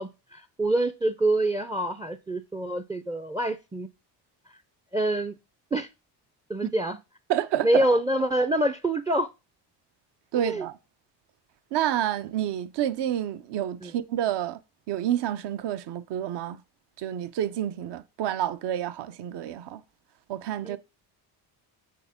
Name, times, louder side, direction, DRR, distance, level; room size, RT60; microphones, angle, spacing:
voice 1, 0.0-3.9 4.9-5.3 5.7-5.9 6.5-7.0 7.6-9.3 10.4-10.7 13.8-13.9 20.6-20.8, right 1 dB, 10° right, 0.4 m, -26 dB
voice 2, 7.3-7.8 10.3-10.8 11.7-14.6 14.9-16.6 17.0-19.8 20.3-20.8, right 11 dB, 65° right, 0.8 m, -29 dB
7.7 x 4.3 x 5.0 m
cardioid pair, 95°, 45 cm